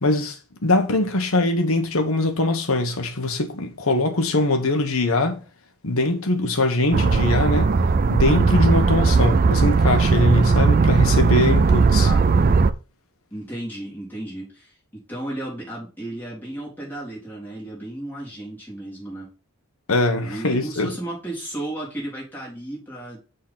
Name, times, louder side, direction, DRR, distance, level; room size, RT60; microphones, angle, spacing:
voice 1, 0.0-5.4 5.8-7.7 8.1-12.1 19.9-20.9, left 2 dB, 65° left, 1.2 m, -22 dB
sound 1, 6.9-12.7, right 4 dB, 40° right, 0.4 m, -18 dB
voice 2, 13.3-19.3 20.2-23.2, right 1 dB, 10° left, 3.7 m, -34 dB
6.4 x 4.0 x 5.7 m
head